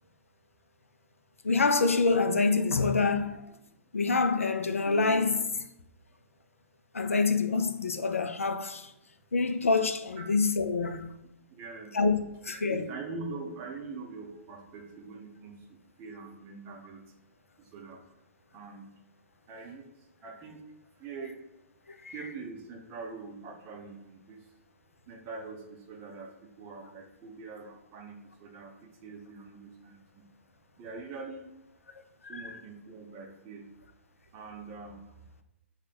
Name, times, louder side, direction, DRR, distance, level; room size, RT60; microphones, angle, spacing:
voice 1, 1.4-3.4 3.9-5.6 6.9-8.9 9.3-11.1 11.9-12.2 12.4-12.8 22.0-22.1 32.2-32.6, left 4 dB, 75° left, 0.3 m, -26 dB
voice 2, 11.2-12.0 12.5-17.1 17.6-18.2 18.5-18.9 19.5-20.6 20.9-21.4 22.1-24.5 25.1-30.3 30.8-31.5 32.2-33.7 34.3-35.4, right 4 dB, 30° right, 0.5 m, -44 dB
2.9 x 2.1 x 4.1 m
figure-of-eight pair, 115°, 7 cm